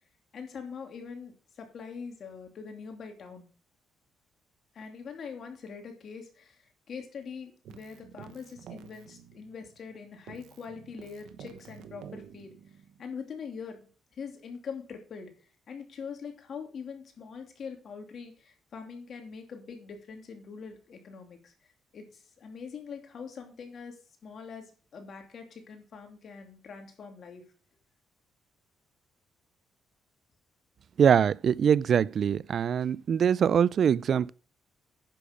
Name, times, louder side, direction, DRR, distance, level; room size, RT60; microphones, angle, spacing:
voice 1, 0.3-3.5 4.7-13.8 14.1-15.3 15.7-21.5 21.9-27.4, left 6 dB, 55° left, 2.7 m, -43 dB
Keyboard (musical), 7.7-9.9 10.3-13.0, right 8 dB, 85° right, 1.2 m, -49 dB
voice 2, 31.0-34.3, right 8 dB, 55° right, 0.4 m, -23 dB
10.0 x 6.6 x 5.1 m
cardioid pair, 90°, 0 cm